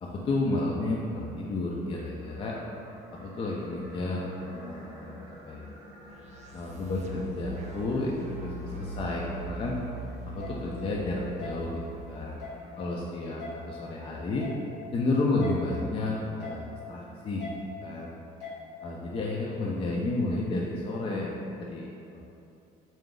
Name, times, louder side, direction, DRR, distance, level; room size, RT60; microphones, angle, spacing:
voice 1, 0.0-2.5 3.1-5.7 6.5-8.1 8.4-9.8 10.3-12.4 12.8-14.5 14.9-17.5 17.8-18.1 18.8-22.2, left 2 dB, 35° left, -3 dB, 0.4 m, -31 dB
sound 1, 2.2-12.9, equal, 25° right, 0.9 m, -52 dB
sound 2, 6.1-12.3, right 1 dB, 40° right, 0.5 m, -41 dB
sound 3, 10.4-10.5 11.4-11.5 12.4-12.6 13.4-13.5 14.4-14.6 15.4-15.5 16.4-16.6 17.4-17.5 18.4-18.6, left 3 dB, 90° left, 1.0 m, -39 dB
3.7 x 2.3 x 3.8 m, 2.6 s
cardioid pair, 110°, 17 cm